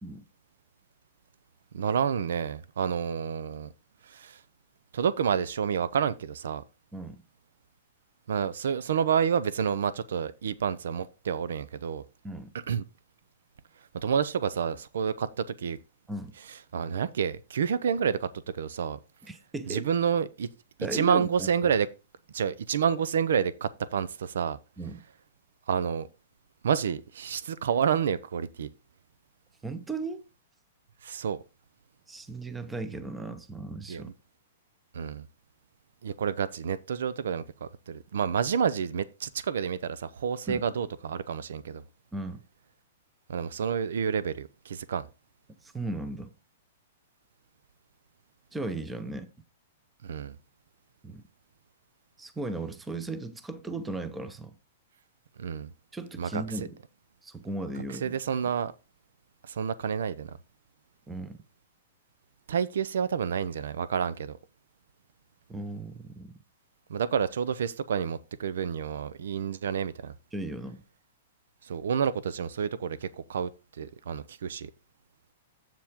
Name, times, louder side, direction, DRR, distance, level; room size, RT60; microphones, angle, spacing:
voice 1, 1.7-3.7 4.1-4.4 4.9-6.6 8.3-12.0 12.7-12.8 13.9-15.8 16.7-18.3 18.5-19.0 19.7-20.5 20.9-21.9 22.3-24.6 25.7-26.1 26.6-28.7 31.0-31.4 33.9-34.1 34.9-35.2 36.0-41.8 43.3-45.0 50.0-50.4 55.4-55.7 56.2-56.4 57.9-58.7 59.5-60.3 62.5-64.4 66.9-70.1 71.7-73.5 73.8-74.7, right 7 dB, 80° right, 0.6 m, -29 dB
voice 2, 19.2-19.9 20.8-21.7 24.8-25.0 29.6-30.2 32.1-34.1 40.5-40.6 42.1-42.4 45.6-46.3 48.5-49.3 51.0-51.2 52.2-54.5 55.9-56.8 57.2-58.2 61.1-61.4 65.5-66.3 70.3-70.8, right 2 dB, 5° right, 0.7 m, -36 dB
7.7 x 7.2 x 3.6 m
hypercardioid pair, 160°, 0 cm